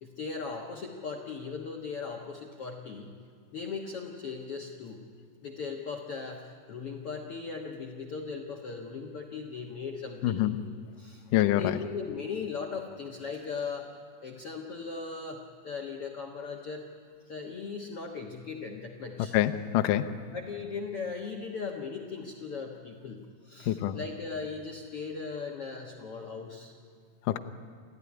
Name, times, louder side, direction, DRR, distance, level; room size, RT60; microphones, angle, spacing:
voice 1, 0.0-3.1 3.5-5.0 5.4-10.5 11.0-13.9 14.2-16.9 17.3-19.4 20.3-26.7, left 5 dB, 70° left, 0 dB, 1.4 m, -38 dB
voice 2, 10.2-10.6 11.3-11.7 19.3-20.1 23.7-24.0 27.3-27.4, left 13 dB, 85° left, 8 dB, 1.9 m, -25 dB
29.0 x 14.5 x 9.8 m, 2.2 s
omnidirectional pair, 4.7 m